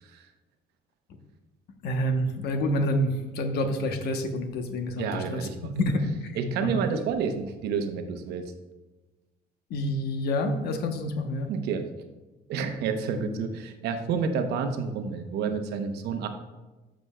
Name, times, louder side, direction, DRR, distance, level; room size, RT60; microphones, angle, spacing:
voice 1, 1.8-5.5 5.7-6.3 6.6-6.8 9.7-11.5, left 1 dB, 70° left, 6 dB, 0.9 m, -28 dB
voice 2, 5.0-5.6 6.3-8.4 11.5-11.9 12.5-16.3, right 6 dB, 80° right, 7 dB, 0.8 m, -29 dB
12.5 x 5.2 x 2.2 m, 1.2 s
cardioid pair, 110°, 17 cm